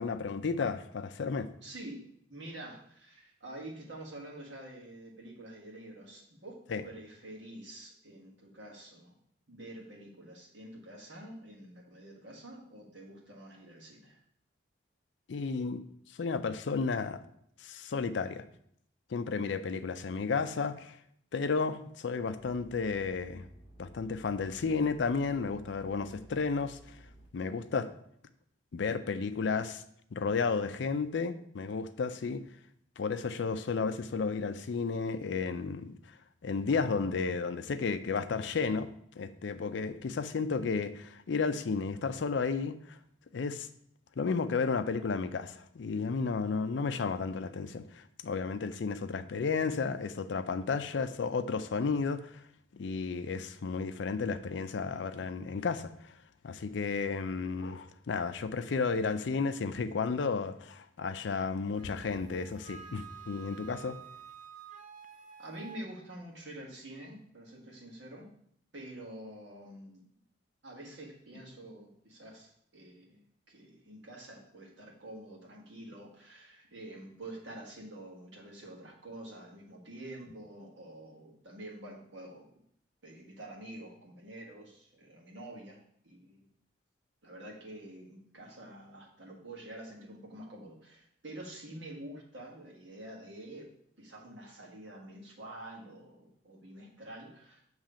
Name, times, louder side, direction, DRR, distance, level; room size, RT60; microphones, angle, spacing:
voice 1, 0.0-1.5 6.7-6.8 15.3-15.8 16.2-17.2 17.6-18.4 19.1-21.0 21.3-23.5 23.8-27.0 27.3-27.9 28.7-29.8 30.1-32.4 33.0-36.0 36.4-38.9 39.2-43.0 43.3-43.7 44.2-52.3 52.7-56.1 56.4-64.0, left 4 dB, 65° left, 11 dB, 0.4 m, -32 dB
voice 2, 1.6-9.2 9.5-14.2 65.4-68.3 68.7-70.0 70.6-73.2 73.5-82.5 83.0-86.5 87.2-97.6, right 1 dB, 70° right, -2 dB, 1.7 m, -47 dB
sound 1, 22.4-27.3, right 1 dB, 15° right, 1.9 m, -56 dB
Wind instrument woodwind instrument, 61.8-65.8, right 7 dB, 40° right, 0.4 m, -50 dB
7.4 x 3.2 x 4.9 m, 0.69 s
head